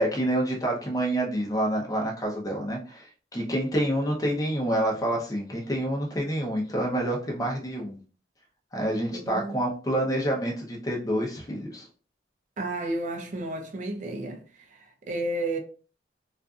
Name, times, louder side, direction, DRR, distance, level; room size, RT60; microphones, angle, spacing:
voice 1, 0.0-8.0 8.7-11.9, right 1 dB, 20° left, 0.7 m, -28 dB
voice 2, 9.1-9.6 12.6-15.6, right 2 dB, 45° right, 0.5 m, -32 dB
2.5 x 2.4 x 2.3 m
head